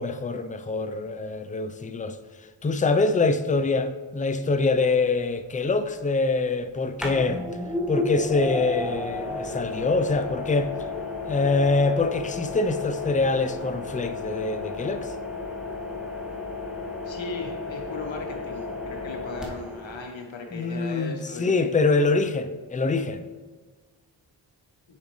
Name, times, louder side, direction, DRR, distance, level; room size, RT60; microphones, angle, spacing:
voice 1, 0.0-2.2 2.6-7.4 7.9-10.7 11.2-15.1 20.5-23.2, left 3 dB, 15° left, 0.5 m, -24 dB
sound 1, 4.6-4.7 7.0-20.0, left 2 dB, ahead, 1.5 m, -33 dB
voice 2, 17.0-21.7, left 3 dB, 75° left, 1.2 m, -37 dB
7.2 x 5.4 x 3.1 m
cardioid pair, 40°, 46 cm